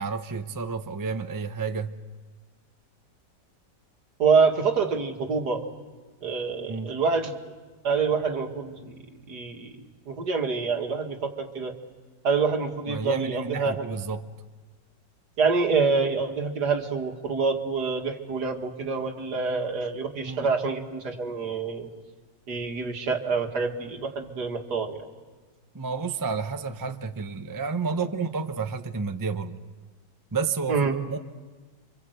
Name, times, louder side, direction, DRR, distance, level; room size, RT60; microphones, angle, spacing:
voice 1, 0.0-1.9 6.6-6.9 12.9-14.2 20.2-20.5 25.7-29.6 30.3-31.2, right 5 dB, 20° right, 7 dB, 0.5 m, -31 dB
voice 2, 4.2-5.6 6.2-7.3 7.8-9.0 9.3-9.7 10.1-11.7 12.2-13.8 15.4-21.9 22.5-25.0 28.0-28.1 30.7-30.9, right 5 dB, 60° right, 3 dB, 2.5 m, -26 dB
29.0 x 25.0 x 8.1 m, 1.3 s
omnidirectional pair, 2.0 m